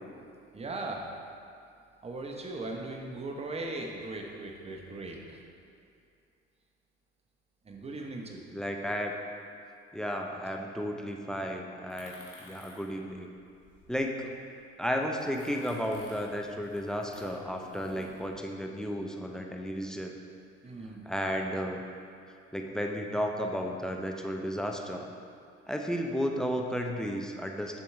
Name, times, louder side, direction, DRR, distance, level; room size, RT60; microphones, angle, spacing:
voice 1, 0.5-1.1 2.0-5.4 7.6-8.4 20.6-21.0, right 2 dB, 15° right, 1 dB, 0.8 m, -38 dB
voice 2, 8.5-9.1 9.9-13.3 13.9-14.3 14.8-20.2 21.1-21.8 22.5-25.1 25.7-27.8, equal, ahead, 2 dB, 0.5 m, -33 dB
sound 1, 11.9-14.5 15.0-18.3, left 2 dB, 40° left, 1.5 m, -53 dB
6.8 x 4.6 x 3.6 m, 2.4 s
figure-of-eight pair, 55°, 36 cm